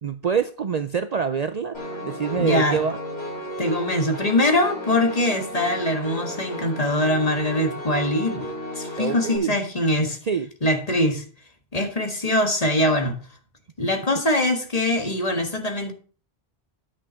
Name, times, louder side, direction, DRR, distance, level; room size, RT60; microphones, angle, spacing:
voice 1, 0.0-3.0 9.0-9.6 10.2-10.5, right 6 dB, 50° right, 0.6 m, -26 dB
Piano, 1.7-9.4, equal, 85° left, 5.0 m, -34 dB
voice 2, 2.3-2.8 3.6-8.5 8.8-10.2 10.6-11.2 11.7-13.2 13.8-15.9, left 1 dB, 40° left, 1.8 m, -22 dB
9.9 x 5.9 x 6.4 m
omnidirectional pair, 1.1 m